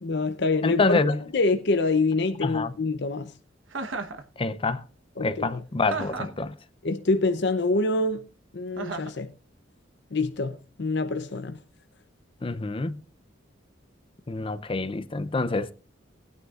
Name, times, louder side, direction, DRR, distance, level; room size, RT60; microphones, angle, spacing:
voice 1, 0.0-1.0 1.3-3.3 5.2-5.6 6.8-8.3 8.5-9.3 10.1-11.6, left 3 dB, 65° left, 0.7 m, -26 dB
voice 2, 0.6-1.2 2.4-2.7 4.4-4.8 5.2-6.5 12.4-13.0 14.3-15.7, left 3 dB, 30° left, 0.6 m, -26 dB
Chuckle chortle, 3.7-4.2 5.9-6.4 8.8-9.2, right 3 dB, 85° right, 1.2 m, -33 dB
19.5 x 9.5 x 2.5 m
head